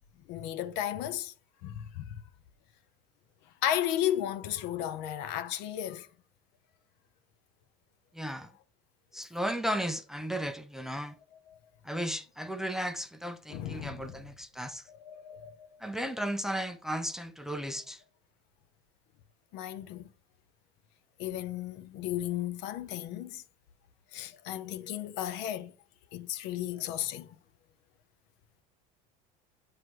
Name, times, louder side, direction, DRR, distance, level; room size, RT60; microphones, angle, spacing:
voice 1, 0.3-1.3 1.6-2.2 3.6-6.1 11.5-11.6 13.5-14.1 14.9-15.8 19.5-20.1 21.2-23.4 24.1-25.7 26.1-27.4, left 11 dB, 65° left, 0.7 m, -34 dB
voice 2, 8.1-8.5 9.1-11.1 11.8-14.9 15.8-18.0, equal, ahead, 0.5 m, -35 dB
7.6 x 3.2 x 4.6 m
supercardioid pair, 125°, 19 cm